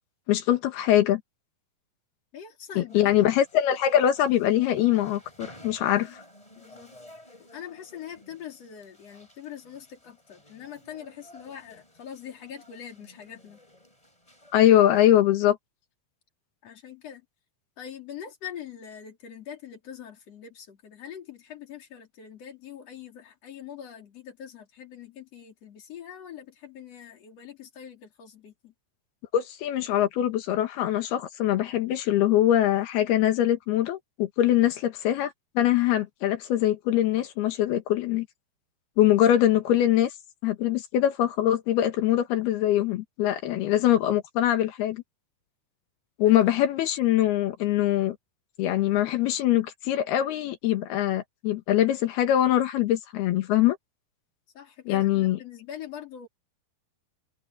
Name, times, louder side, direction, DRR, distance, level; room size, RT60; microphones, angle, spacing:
voice 1, 0.3-1.2 2.8-6.2 14.5-15.6 29.3-38.3 39.0-40.1 40.4-45.0 46.2-48.2 48.6-53.8 54.9-55.4, left 12 dB, 85° left, 3.5 m, -23 dB
voice 2, 2.3-3.1 6.0-6.2 6.6-6.9 7.5-13.6 16.6-17.3 17.8-28.7 46.2-46.4 54.5-56.3, left 9 dB, 45° left, 4.2 m, -43 dB
sound 1, 2.9-15.1, left 1 dB, 10° left, 7.7 m, -52 dB
omnidirectional pair, 4.4 m